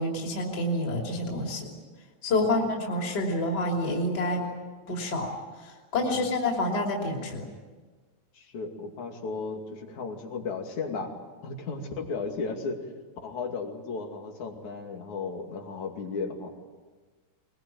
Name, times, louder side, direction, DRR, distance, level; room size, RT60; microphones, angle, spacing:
voice 1, 0.0-1.7 2.2-4.5 4.9-5.3 5.6-7.5, left 1 dB, 35° left, 0 dB, 3.4 m, -28 dB
voice 2, 6.0-6.3 8.3-11.1 11.4-12.9 13.2-16.5, left 4 dB, 75° left, 3 dB, 3.9 m, -35 dB
22.0 x 21.5 x 9.1 m, 1.4 s
omnidirectional pair, 3.4 m